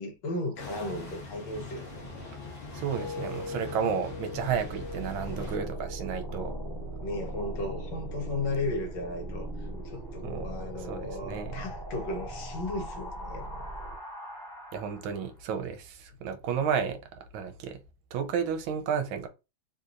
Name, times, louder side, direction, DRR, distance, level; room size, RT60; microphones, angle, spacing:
voice 1, 0.0-2.3 7.0-13.6, left 2 dB, 65° left, 1.4 m, -35 dB
sound 1, 0.6-5.6, left 3 dB, 45° left, 1.3 m, -42 dB
sound 2, 2.0-7.0 7.4-7.7, left 4 dB, 85° left, 1.5 m, -43 dB
voice 2, 2.7-6.5 10.2-10.5 10.8-11.6 14.7-17.0 17.3-17.8 18.1-19.3, right 7 dB, 80° right, 1.4 m, -32 dB
sound 3, 4.3-15.3, right 1 dB, 15° left, 1.2 m, -39 dB
3.5 x 2.8 x 2.4 m
omnidirectional pair, 2.2 m